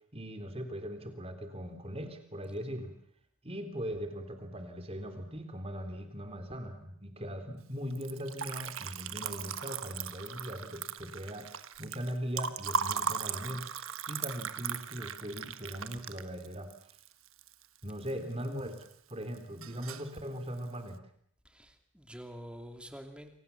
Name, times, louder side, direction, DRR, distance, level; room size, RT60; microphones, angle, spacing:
voice 1, 0.1-2.9 3.4-11.5 11.8-13.6 14.1-16.7 17.8-21.0, equal, 25° right, 7 dB, 3.6 m, -40 dB
Liquid, 7.9-18.1 18.4-19.1 19.4-20.1, right 6 dB, 65° right, 1.4 m, -38 dB
voice 2, 21.4-23.4, equal, 5° right, 5 dB, 2.5 m, -47 dB
29.0 x 24.5 x 7.1 m, 0.66 s
head